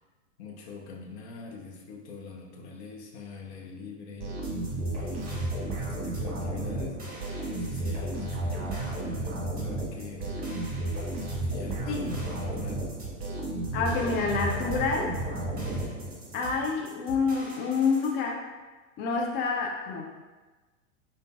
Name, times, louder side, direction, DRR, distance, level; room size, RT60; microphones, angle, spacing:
voice 1, 0.4-4.3 4.9-5.3 5.8-7.0 7.5-10.8 11.4-12.9, left 4 dB, 55° left, 0 dB, 0.8 m, -43 dB
sound 1, 4.2-16.4, right 1 dB, 40° right, 1.1 m, -33 dB
sound 2, 4.4-18.1, right 3 dB, 20° right, 1.3 m, -46 dB
voice 2, 13.7-15.1 16.3-18.4 19.0-20.0, left 4 dB, 25° left, 0 dB, 0.5 m, -28 dB
5.1 x 2.5 x 2.3 m, 1.2 s
figure-of-eight pair, 95°, 39 cm